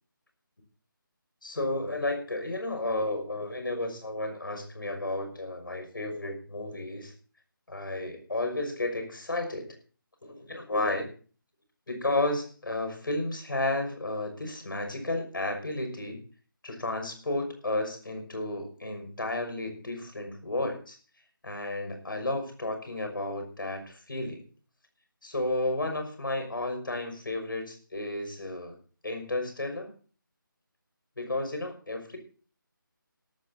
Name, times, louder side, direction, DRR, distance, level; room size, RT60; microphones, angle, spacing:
voice 1, 1.4-7.1 7.7-9.8 10.2-11.1 11.9-16.2 16.6-21.0 21.4-24.4 25.2-28.8 29.0-29.9 31.2-32.2, left 2 dB, 70° left, 6 dB, 5.9 m, -32 dB
18.0 x 14.0 x 2.8 m, 0.39 s
figure-of-eight pair, 175°, 12 cm